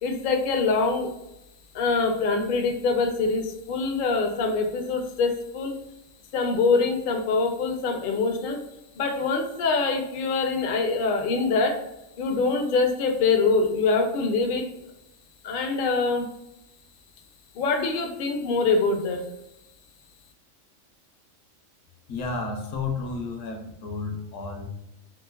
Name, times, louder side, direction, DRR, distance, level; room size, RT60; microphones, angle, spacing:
voice 1, 0.0-1.1 1.7-5.8 6.3-8.6 9.0-11.8 12.2-14.6 15.4-16.3 17.5-19.3, left 4 dB, 60° left, 4 dB, 0.5 m, -24 dB
voice 2, 22.1-24.6, left 4 dB, 80° left, 3 dB, 1.0 m, -32 dB
3.1 x 3.0 x 2.2 m, 0.87 s
omnidirectional pair, 1.3 m